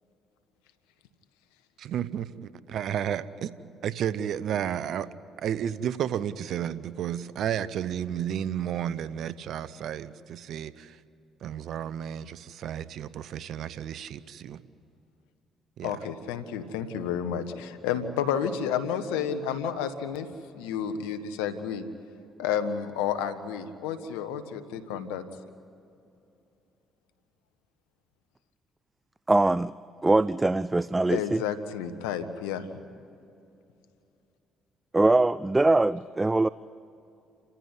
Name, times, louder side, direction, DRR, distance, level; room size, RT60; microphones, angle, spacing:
voice 1, 1.8-3.5 3.8-5.1 5.4-11.0 11.4-14.6 15.8-16.0, right 9 dB, 65° right, 16 dB, 0.8 m, -32 dB
voice 2, 15.8-20.3 20.5-21.8 22.4-25.2 31.1-32.6, left 8 dB, 85° left, 9 dB, 1.3 m, -31 dB
voice 3, 29.3-29.7 30.0-31.4 34.9-36.5, right 2 dB, 20° right, 18 dB, 0.5 m, -22 dB
29.5 x 15.0 x 9.7 m, 2.7 s
hypercardioid pair, 55°, 0 cm